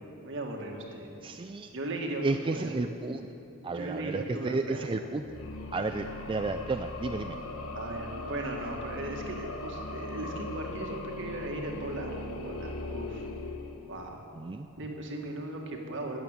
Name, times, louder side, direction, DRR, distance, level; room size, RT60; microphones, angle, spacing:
voice 1, 0.2-1.1 1.7-2.7 3.7-4.9 7.7-12.1 12.4-13.3 13.9-14.2 14.8-16.2, right 1 dB, 60° right, 1 dB, 1.8 m, -37 dB
voice 2, 1.2-1.7 2.2-3.3 3.6-5.2 5.7-7.4 14.3-14.7, right 3 dB, 25° right, 7 dB, 0.4 m, -32 dB
sound 1, 5.2-14.3, left 2 dB, 70° left, 1.1 m, -39 dB
12.5 x 8.2 x 9.0 m, 2.8 s
head